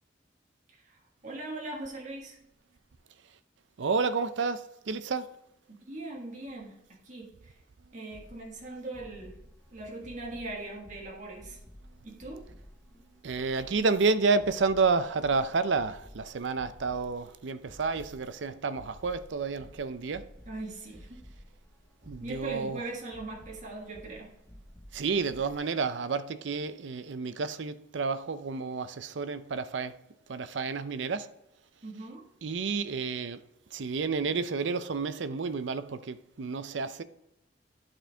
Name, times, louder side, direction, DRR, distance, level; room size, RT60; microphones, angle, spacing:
voice 1, 0.7-2.4 5.9-6.7 7.0-7.6 7.9-9.4 9.7-11.6 12.0-12.4 20.4-21.2 22.2-24.3 31.8-32.3, right 2 dB, 45° right, 1.6 m, -40 dB
voice 2, 3.8-5.3 13.2-20.3 22.0-22.8 24.9-30.0 30.3-31.3 32.4-33.4 33.7-37.0, right 4 dB, 70° right, 0.5 m, -30 dB
sound 1, 8.1-25.6, equal, 10° left, 0.6 m, -53 dB
11.5 x 4.4 x 3.4 m
head